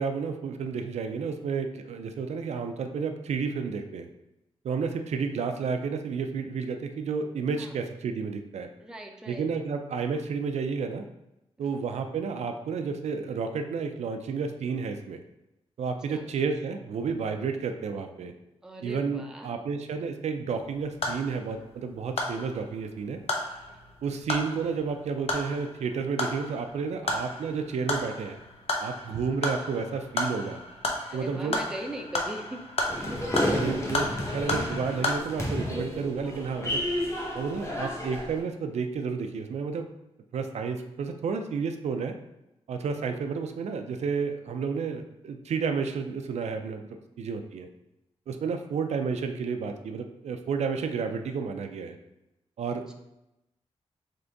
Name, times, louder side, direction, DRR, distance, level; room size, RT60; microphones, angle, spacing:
voice 1, 0.0-4.1 4.6-8.7 9.3-11.0 11.6-15.2 15.8-18.3 18.8-23.2 24.0-28.4 28.8-30.6 31.1-31.6 33.2-36.8 37.3-39.9 40.3-42.1 42.7-46.8 47.2-47.7 48.3-52.0 52.6-52.8, right 5 dB, 80° right, 6 dB, 0.4 m, -31 dB
voice 2, 8.8-9.5 11.6-11.7 16.1-16.3 18.6-19.5 23.7-23.8 31.1-32.6 47.1-47.2, right 1 dB, 5° right, 3 dB, 0.4 m, -40 dB
sound 1, 20.5-35.2, left 2 dB, 60° left, 0.7 m, -34 dB
sound 2, 32.9-38.4, left 1 dB, 25° left, 1.0 m, -31 dB
3.9 x 3.5 x 3.4 m, 0.90 s
wide cardioid pair, 150°, 11 cm